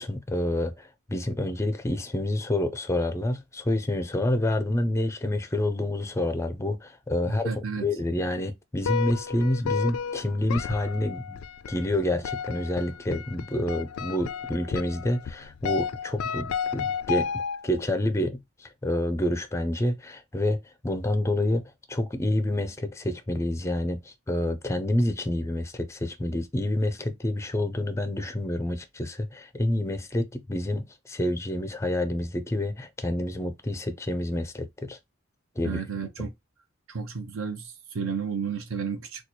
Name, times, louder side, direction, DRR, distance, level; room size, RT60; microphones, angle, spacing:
voice 1, 0.0-11.4 11.7-17.3 17.6-21.6 21.9-35.0 35.6-35.8 36.2-36.3, left 1 dB, 15° left, 0.4 m, -28 dB
voice 2, 7.3-7.9 35.6-36.3 36.9-39.2, right 6 dB, 65° right, 0.7 m, -32 dB
sound 1, 8.8-17.8, left 6 dB, 80° left, 0.3 m, -32 dB
2.9 x 2.3 x 4.1 m
head